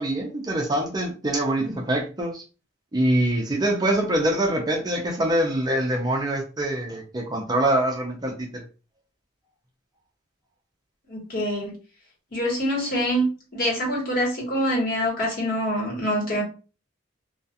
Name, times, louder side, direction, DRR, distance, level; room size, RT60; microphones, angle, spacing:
voice 1, 0.0-2.4 2.9-8.6, right 1 dB, 20° right, 1 dB, 0.4 m, -24 dB
voice 2, 11.1-11.7 12.3-16.4, equal, 50° left, -2 dB, 1.3 m, -25 dB
2.4 x 2.3 x 2.7 m, 0.34 s
head